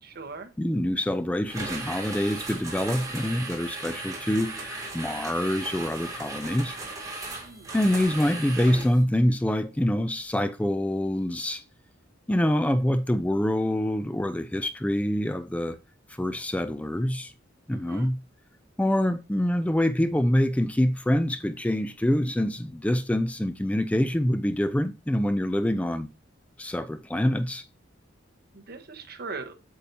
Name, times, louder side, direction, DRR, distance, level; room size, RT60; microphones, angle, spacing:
voice 1, 0.0-0.5 7.4-7.8 17.7-18.1 28.5-29.5, right 4 dB, 55° right, 1.2 m, -40 dB
voice 2, 0.6-6.8 7.7-11.6 12.3-15.8 16.1-17.3 17.7-18.2 18.8-26.1 26.6-27.6, left 1 dB, 5° left, 0.3 m, -25 dB
sound 1, 1.5-9.0, right 2 dB, 20° right, 2.5 m, -37 dB
8.3 x 6.9 x 2.8 m
head